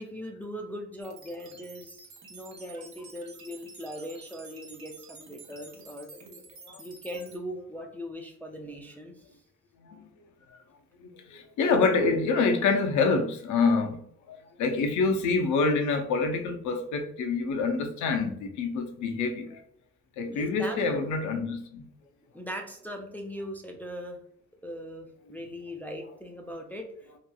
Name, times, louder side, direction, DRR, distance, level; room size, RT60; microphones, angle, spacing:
voice 1, 0.0-6.1 6.8-9.4 20.3-20.8 22.3-24.2 24.6-26.9, equal, 5° left, 0.3 m, -40 dB
sound 1, 1.0-7.4, right 4 dB, 70° right, 0.8 m, -50 dB
voice 2, 11.0-14.0 14.3-19.6 20.2-21.9, left 4 dB, 75° left, 0.6 m, -26 dB
2.9 x 2.3 x 2.2 m
cardioid pair, 90°, 30 cm